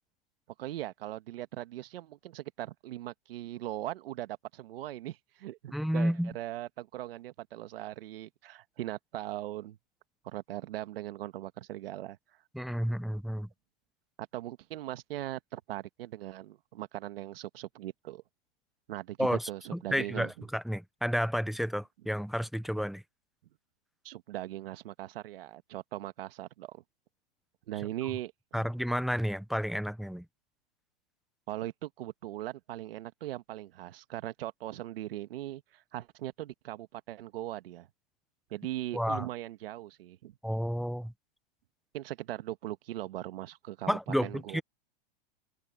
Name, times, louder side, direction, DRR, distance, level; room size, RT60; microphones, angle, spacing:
voice 1, 0.6-9.8 10.2-12.2 14.3-18.2 18.9-20.3 24.0-26.8 27.7-28.7 31.5-37.9 38.5-40.3 41.9-44.6, right 14 dB, 70° right, 1.6 m, -40 dB
voice 2, 5.7-6.3 12.5-13.5 19.2-19.4 19.9-23.0 28.5-30.2 38.9-39.3 40.4-41.1 43.9-44.6, equal, ahead, 0.5 m, -31 dB
supercardioid pair, 155°, 30 cm